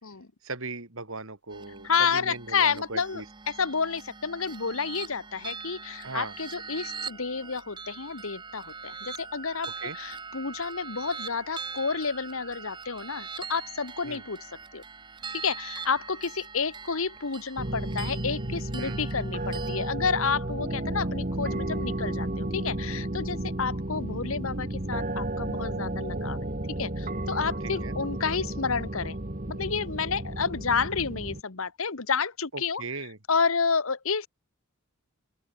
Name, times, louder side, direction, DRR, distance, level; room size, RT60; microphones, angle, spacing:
voice 1, 0.4-3.2 6.0-6.3 9.8-10.0 14.0-14.2 18.8-19.0 27.6-28.0 32.5-33.2, right 3 dB, 65° right, 2.9 m, -38 dB
sound 1, 1.5-19.9, right 5 dB, 20° right, 0.7 m, -42 dB
voice 2, 1.8-14.4 14.7-14.8 15.3-26.5 26.8-29.2 29.5-32.8 33.3-34.3, left 5 dB, 65° left, 1.2 m, -30 dB
sound 2, 17.6-31.4, right 1 dB, 35° right, 1.6 m, -32 dB
open air
head